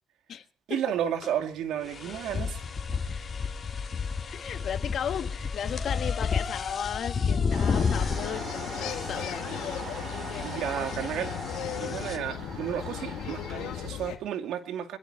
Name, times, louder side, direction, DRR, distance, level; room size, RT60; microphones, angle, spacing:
voice 1, 0.7-2.6 2.9-3.0 10.4-11.3 11.6-15.0, right 10 dB, 80° right, 2.3 m, -32 dB
sound 1, 1.2-1.3 1.8-12.2, left 5 dB, 45° left, 3.2 m, -32 dB
voice 2, 4.3-9.7, left 9 dB, 65° left, 1.4 m, -35 dB
sound 2, 7.5-13.9, right 5 dB, 50° right, 4.6 m, -41 dB
sound 3, 7.9-14.2, left 11 dB, 90° left, 2.2 m, -37 dB
27.0 x 11.5 x 4.3 m
cardioid pair, 90°, 0 cm